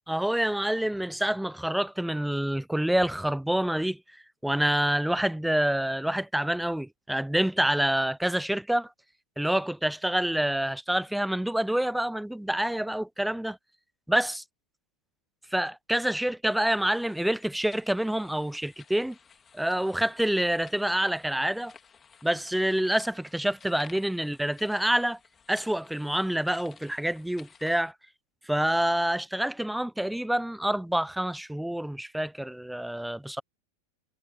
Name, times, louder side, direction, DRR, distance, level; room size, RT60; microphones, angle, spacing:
voice 1, 0.1-4.0 4.4-8.9 9.4-13.6 14.1-14.4 15.5-19.2 19.5-21.7 22.2-25.2 25.5-27.9 28.5-33.4, right 1 dB, ahead, 0.4 m, -27 dB
sound 1, 16.5-27.9, left 6 dB, 20° left, 3.1 m, -55 dB
figure-of-eight pair, 90°, 0 cm